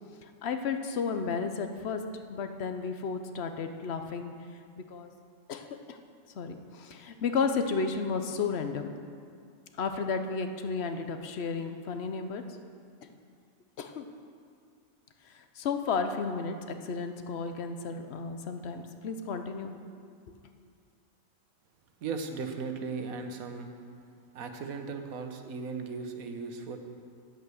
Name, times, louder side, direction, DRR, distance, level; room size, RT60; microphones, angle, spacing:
voice 1, 0.2-2.0 2.3-4.3 4.8-5.1 5.5-6.0 6.4-8.9 9.8-12.4 13.8-14.1 15.2-19.7, left 5 dB, 55° left, 7 dB, 0.9 m, -33 dB
voice 2, 22.0-23.7 24.3-26.8, right 4 dB, 85° right, 5 dB, 1.4 m, -37 dB
9.6 x 8.2 x 6.3 m, 2.3 s
omnidirectional pair, 1.4 m